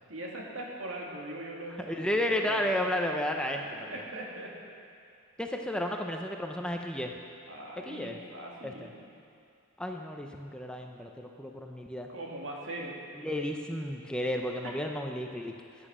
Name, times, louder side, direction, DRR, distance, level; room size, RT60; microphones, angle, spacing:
voice 1, 0.1-2.6 3.7-4.5 7.5-9.0 12.1-13.0 14.6-14.7, right 1 dB, 75° right, -2 dB, 2.3 m, -41 dB
voice 2, 1.9-4.0 5.4-7.2 7.9-8.2 8.6-8.7 9.8-12.1 13.2-15.5, left 1 dB, 5° left, 2 dB, 0.7 m, -32 dB
14.5 x 8.7 x 6.2 m, 2.6 s
head